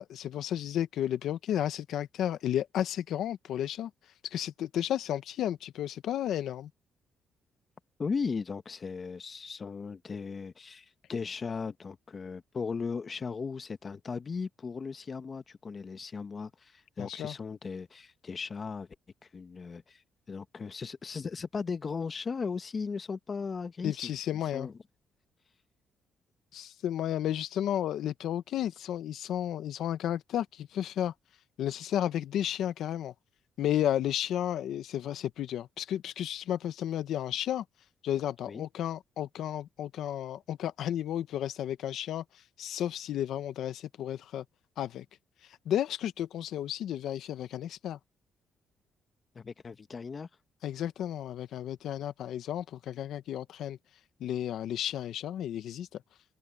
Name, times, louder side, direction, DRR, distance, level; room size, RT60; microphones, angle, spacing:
voice 1, 0.0-3.9 4.2-6.7 17.0-17.3 23.8-24.7 26.5-31.1 31.6-33.1 33.6-37.6 38.0-42.2 42.6-44.4 44.8-45.0 45.7-48.0 50.6-53.8 54.2-56.0, left 11 dB, 75° left, 1.0 m, -32 dB
voice 2, 8.0-18.9 19.3-20.0 20.3-24.8 38.5-38.7 49.3-50.3, left 5 dB, 40° left, 1.1 m, -37 dB
cardioid pair, 90°, 0 cm